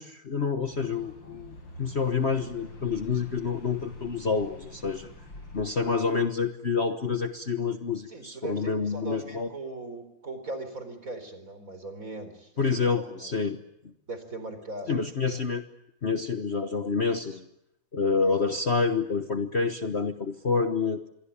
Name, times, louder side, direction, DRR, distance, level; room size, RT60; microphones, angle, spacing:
voice 1, 0.0-5.1 5.5-9.5 12.6-13.6 13.8-13.9 14.9-15.7 16.0-17.5 17.9-21.0, left 5 dB, 40° left, 8 dB, 1.4 m, -28 dB
sound 1, 0.6-5.6, left 1 dB, 80° left, 7.8 m, -46 dB
voice 2, 8.1-12.6 12.9-13.4 14.1-14.9 15.2-15.4, right 2 dB, 45° right, 10 dB, 4.7 m, -39 dB
27.0 x 23.5 x 8.7 m, 0.81 s
omnidirectional pair, 2.1 m